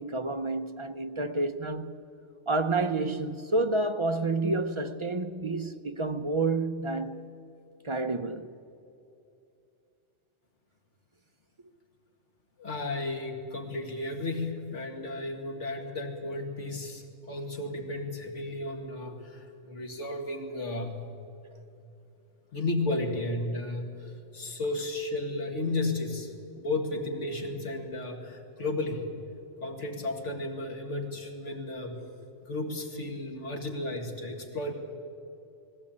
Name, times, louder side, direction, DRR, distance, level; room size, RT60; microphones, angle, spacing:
voice 1, 0.0-1.9 2.5-7.3 7.8-8.5, right 2 dB, 35° right, 0.6 m, -29 dB
voice 2, 12.6-21.0 22.5-29.0 29.6-32.0 32.5-34.7, left 2 dB, 75° left, 2.6 m, -33 dB
19.5 x 17.0 x 8.8 m
omnidirectional pair, 1.3 m